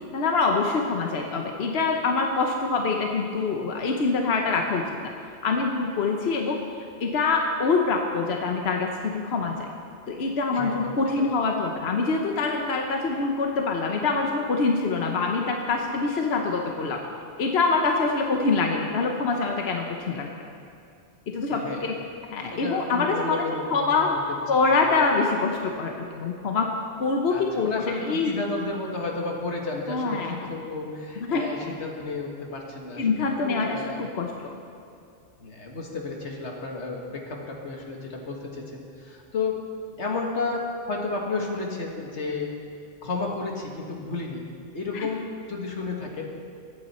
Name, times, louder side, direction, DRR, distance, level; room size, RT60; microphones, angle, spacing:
voice 1, 0.1-5.0 5.4-6.6 7.0-9.7 10.1-17.0 17.4-20.3 21.3-22.0 22.3-23.4 23.7-24.1 24.5-26.7 27.0-27.8 28.0-28.3 29.9-30.4 31.2-31.6 33.0-34.6 44.9-45.1, left 4 dB, 65° left, 2 dB, 1.2 m, -25 dB
voice 2, 10.5-10.9 11.2-11.3 21.5-21.9 22.5-24.2 27.3-34.0 35.4-39.6 40.0-42.5 43.0-46.3, left 3 dB, 90° left, 0 dB, 2.0 m, -32 dB
21.5 x 9.0 x 4.3 m, 2.5 s
omnidirectional pair, 1.1 m